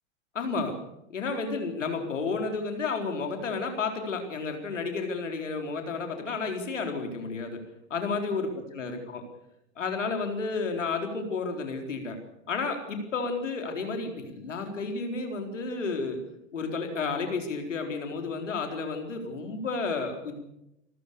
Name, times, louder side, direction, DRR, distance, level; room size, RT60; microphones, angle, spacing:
voice 1, 0.3-0.7 1.1-7.6 7.9-9.2 9.8-12.2 12.5-16.2 16.5-20.4, left 4 dB, 85° left, 4 dB, 4.3 m, -31 dB
27.0 x 15.0 x 6.9 m, 0.85 s
hypercardioid pair, 95°, 36 cm